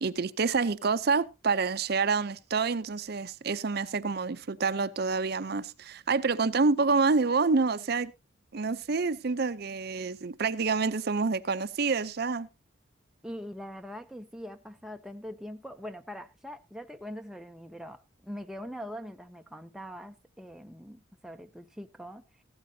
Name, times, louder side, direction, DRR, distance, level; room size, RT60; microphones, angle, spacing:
voice 1, 0.0-8.1 8.5-12.5, right 4 dB, 50° right, 0.6 m, -27 dB
voice 2, 13.2-22.2, equal, ahead, 0.5 m, -42 dB
15.0 x 12.5 x 2.7 m
head